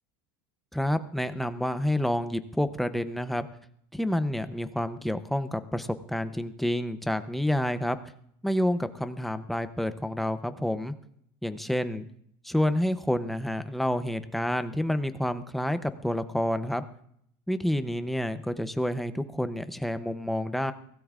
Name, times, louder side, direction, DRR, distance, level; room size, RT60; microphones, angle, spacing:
voice 1, 0.7-3.5 3.9-8.0 8.4-10.9 11.4-12.1 12.4-16.8 17.5-20.7, left 1 dB, ahead, 10 dB, 0.6 m, -29 dB
23.0 x 17.0 x 2.4 m, 0.69 s
cardioid pair, 145°, 11 cm